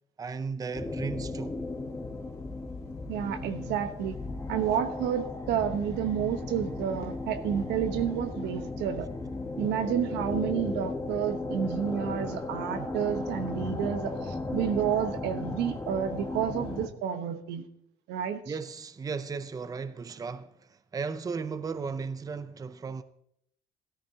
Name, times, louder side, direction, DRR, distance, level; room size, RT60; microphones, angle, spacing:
voice 1, 0.2-1.6 18.5-23.0, right 5 dB, 20° right, 0.6 m, -35 dB
sound 1, 0.7-16.9, left 2 dB, 15° left, 1.3 m, -36 dB
voice 2, 3.1-4.2 4.5-9.1 9.6-17.7 18.1-18.4, right 9 dB, 90° right, 1.0 m, -30 dB
13.5 x 13.5 x 2.8 m
cardioid pair, 110°, 17 cm